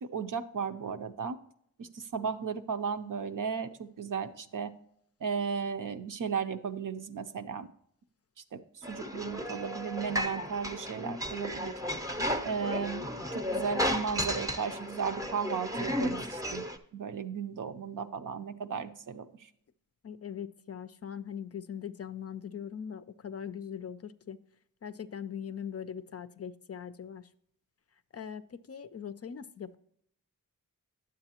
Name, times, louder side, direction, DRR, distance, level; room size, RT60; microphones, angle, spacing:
voice 1, 0.0-1.4 1.8-4.7 5.2-7.7 8.5-11.8 12.4-16.6 16.9-19.5, right 6 dB, 65° right, 9 dB, 0.6 m, -35 dB
sound 1, 8.8-16.8, equal, 10° right, 0.6 m, -34 dB
voice 2, 20.0-24.4 24.8-27.3 28.1-29.8, left 8 dB, 45° left, 12 dB, 0.4 m, -41 dB
9.7 x 7.5 x 2.9 m, 0.68 s
wide cardioid pair, 110°, 35 cm